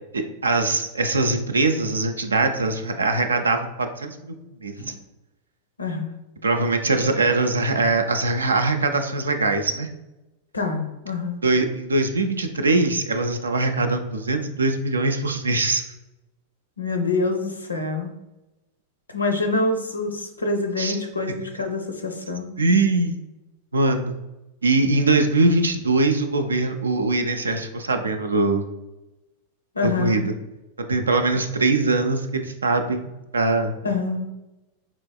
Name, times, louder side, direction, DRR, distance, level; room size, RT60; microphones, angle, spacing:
voice 1, 0.1-4.3 4.6-4.7 6.4-9.9 11.4-15.8 20.8-21.0 22.6-23.2 23.7-24.2 24.6-28.6 29.8-30.3 30.8-33.8, right 3 dB, 75° right, 7 dB, 0.3 m, -22 dB
voice 2, 5.8-6.1 10.5-11.4 16.8-18.1 19.1-22.5 29.7-30.2 33.8-34.3, left 3 dB, 80° left, 5 dB, 0.4 m, -26 dB
3.9 x 2.9 x 2.2 m, 0.99 s
figure-of-eight pair, 90°, 0 cm